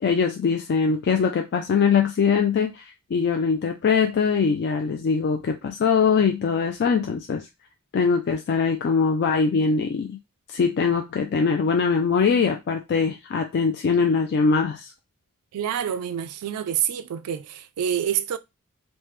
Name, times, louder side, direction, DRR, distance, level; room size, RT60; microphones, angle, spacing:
voice 1, 0.0-7.5 7.9-10.2 10.5-14.9, left 5 dB, 50° left, 0.3 m, -22 dB
voice 2, 15.5-18.4, right 9 dB, 85° right, 0.3 m, -27 dB
3.2 x 2.1 x 3.0 m
head